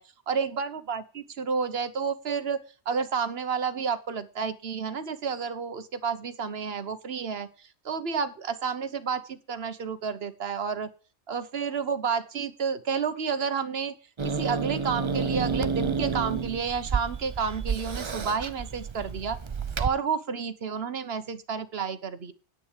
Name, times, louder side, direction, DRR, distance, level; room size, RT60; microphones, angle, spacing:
voice 1, 0.3-10.9 11.3-13.9 14.2-19.4 19.8-22.3, right 6 dB, 60° right, 12 dB, 1.2 m, -30 dB
Growling / Hiss, 14.2-19.9, right 5 dB, 35° right, 0.5 m, -30 dB
10.0 x 8.5 x 5.0 m, 0.35 s
omnidirectional pair, 1.2 m